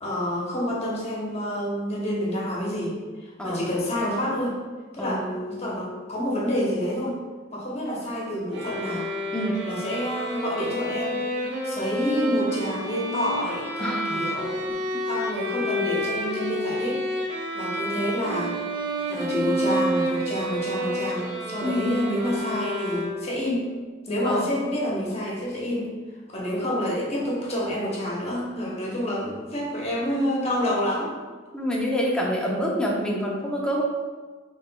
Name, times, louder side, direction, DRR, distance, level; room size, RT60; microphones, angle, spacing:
voice 1, 0.0-4.6 4.9-7.1 7.5-9.1 9.7-14.6 15.1-17.0 17.5-18.6 19.1-23.7 24.1-25.9 26.3-31.1, equal, 35° left, -4 dB, 1.0 m, -28 dB
sound 1, 8.5-23.5, equal, 60° right, 0.8 m, -29 dB
voice 2, 9.3-9.6 13.8-14.2 14.7-15.0 21.6-22.0 24.2-24.5 31.5-33.8, equal, 5° left, -3 dB, 0.6 m, -27 dB
5.5 x 3.1 x 2.3 m, 1.4 s
head